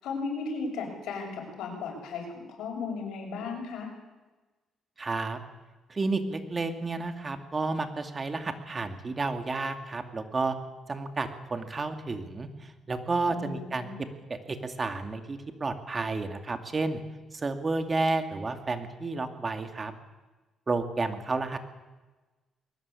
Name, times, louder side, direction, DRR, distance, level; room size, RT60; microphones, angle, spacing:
voice 1, 0.0-3.9 13.3-14.0, left 4 dB, 85° left, 2 dB, 7.2 m, -35 dB
voice 2, 5.0-5.4 5.9-10.6 10.9-17.0 17.3-19.9 20.7-21.6, right 3 dB, 30° right, 7 dB, 2.6 m, -31 dB
22.0 x 20.0 x 8.6 m, 1.2 s
cardioid pair, 90°, 0 cm